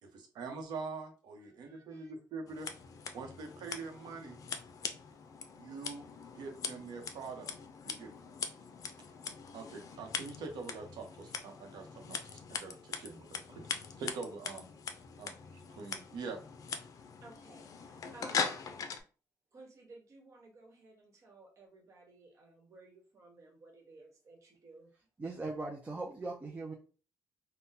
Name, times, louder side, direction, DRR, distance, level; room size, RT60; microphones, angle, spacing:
voice 1, 0.0-2.7 3.1-4.4 5.5-6.0 6.3-7.5 7.8-8.3 9.5-13.7 14.0-14.7 15.2-15.3 15.7-16.4, right 4 dB, 85° right, 3 dB, 0.9 m, -44 dB
voice 2, 1.4-2.1 17.2-18.6 19.5-24.9, right 2 dB, 45° right, 1 dB, 1.2 m, -57 dB
Scissors, 2.5-19.0, left 6 dB, 55° left, 0.4 m, -42 dB
voice 3, 25.2-26.7, right 3 dB, 20° right, -1 dB, 0.5 m, -39 dB
3.7 x 2.2 x 2.7 m, 0.36 s
cardioid pair, 125°, 7 cm